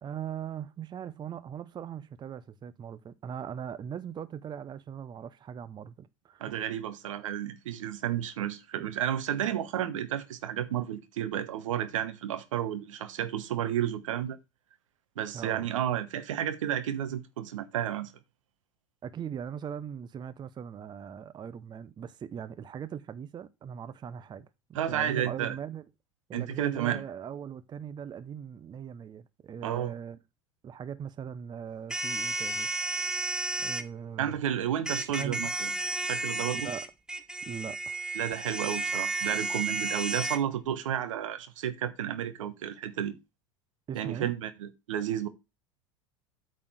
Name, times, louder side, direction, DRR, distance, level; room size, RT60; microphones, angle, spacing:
voice 1, 0.0-6.6 8.8-8.9 15.3-15.7 19.0-25.8 26.3-30.2 30.6-32.9 33.6-34.4 35.1-35.5 36.5-36.9 37.4-38.0 43.9-44.3, right 8 dB, 25° right, 0.6 m, -40 dB
voice 2, 6.4-14.4 15.2-18.1 24.7-25.6 26.3-27.0 29.6-29.9 34.2-35.7 36.1-36.7 38.1-43.2 43.9-45.3, right 10 dB, 70° right, 1.2 m, -32 dB
sound 1, 31.9-33.8 34.9-40.4, right 2 dB, 5° right, 0.9 m, -32 dB
8.6 x 4.1 x 6.3 m
hypercardioid pair, 80°, 17 cm